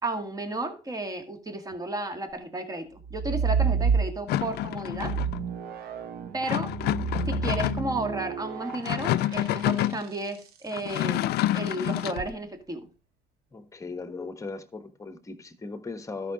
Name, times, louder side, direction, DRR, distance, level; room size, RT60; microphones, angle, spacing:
voice 1, 0.0-5.1 6.3-6.7 7.3-12.8, right 2 dB, 20° right, 1.9 m, -33 dB
sound 1, 3.0-4.5 4.9-10.4 12.0-12.3, right 5 dB, 70° right, 1.4 m, -29 dB
sound 2, 4.3-5.4 6.4-8.0 8.7-10.0 10.7-12.2, left 14 dB, 70° left, 0.4 m, -28 dB
voice 2, 13.5-16.3, left 3 dB, 20° left, 1.4 m, -38 dB
12.5 x 5.7 x 5.0 m
cardioid pair, 110°, 17 cm